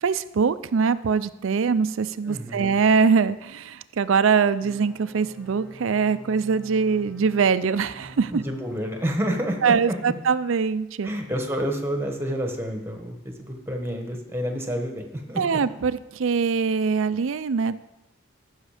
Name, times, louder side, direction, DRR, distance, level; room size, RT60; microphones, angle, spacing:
voice 1, 0.0-8.4 9.6-11.1 15.4-17.7, right 5 dB, 65° right, 14 dB, 0.4 m, -23 dB
voice 2, 2.3-2.7 8.3-10.0 11.0-15.6, equal, 10° right, 3 dB, 1.3 m, -29 dB
sound 1, 4.6-9.6, equal, 5° left, 2.5 m, -47 dB
14.5 x 6.4 x 5.0 m, 0.96 s
head